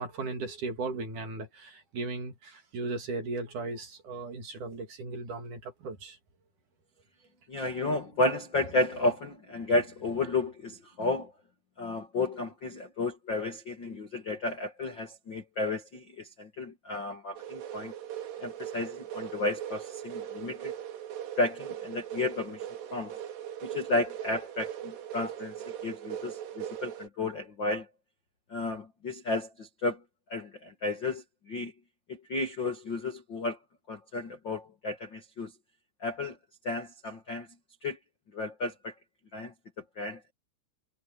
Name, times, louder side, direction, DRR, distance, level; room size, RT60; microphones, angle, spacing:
voice 1, 0.0-6.2, right 3 dB, 45° right, 3.3 m, -37 dB
voice 2, 7.5-11.3 11.8-17.9 18.4-20.7 21.4-23.1 23.6-27.9 28.5-30.0 30.3-31.7 32.1-33.6 33.9-35.5 36.0-36.4 36.6-37.5 37.8-38.0 38.3-38.9 39.3-39.5 39.9-40.3, left 2 dB, 70° left, 1.0 m, -32 dB
sound 1, 17.4-27.1, right 10 dB, 80° right, 5.2 m, -40 dB
omnidirectional pair, 5.6 m